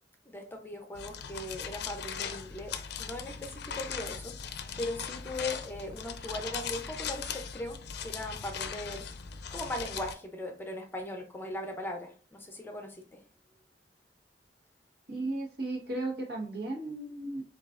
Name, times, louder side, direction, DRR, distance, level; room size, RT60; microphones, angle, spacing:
voice 1, 0.3-9.1 9.5-13.2, left 1 dB, 10° left, 0.5 m, -39 dB
sound 1, 0.9-10.1, left 7 dB, 65° left, 0.5 m, -39 dB
voice 2, 15.1-17.4, right 2 dB, 65° right, 1.1 m, -35 dB
7.0 x 2.4 x 2.4 m
head